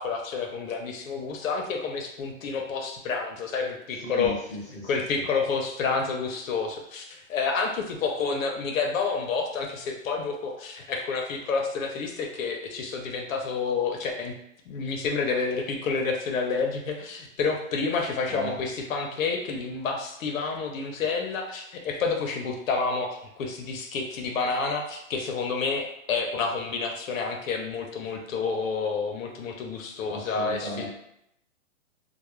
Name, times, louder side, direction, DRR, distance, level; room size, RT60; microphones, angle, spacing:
voice 1, 0.0-4.4 4.8-14.3 14.7-30.9, left 4 dB, 75° left, 2 dB, 0.5 m, -29 dB
voice 2, 4.0-5.2 18.3-18.6 30.0-30.9, equal, 10° left, -13 dB, 0.8 m, -36 dB
2.2 x 2.0 x 2.9 m, 0.79 s
hypercardioid pair, 175°, 41 cm